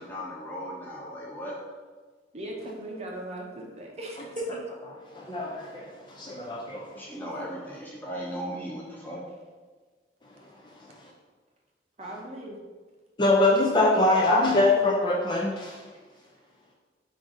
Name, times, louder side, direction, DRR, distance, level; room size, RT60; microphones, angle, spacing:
voice 1, 0.0-1.5 7.0-9.2, equal, 10° left, -5 dB, 0.8 m, -37 dB
voice 2, 2.3-4.4 12.0-12.6, right 1 dB, 35° right, -1 dB, 0.6 m, -38 dB
voice 3, 5.2-5.9 6.2-6.9 13.2-15.8, left 2 dB, 25° left, -2 dB, 0.4 m, -23 dB
3.9 x 2.6 x 4.8 m, 1.4 s
head